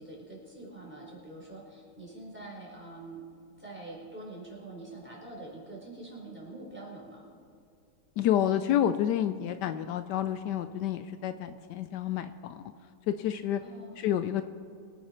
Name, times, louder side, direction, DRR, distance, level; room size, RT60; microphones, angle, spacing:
voice 1, 0.0-3.2 3.6-7.2 13.6-14.0, right 2 dB, 5° right, -4 dB, 4.1 m, -45 dB
voice 2, 8.2-12.6 13.1-13.6 14.0-14.4, left 10 dB, 80° left, 10 dB, 1.2 m, -29 dB
24.0 x 9.3 x 4.3 m, 2.5 s
omnidirectional pair, 1.9 m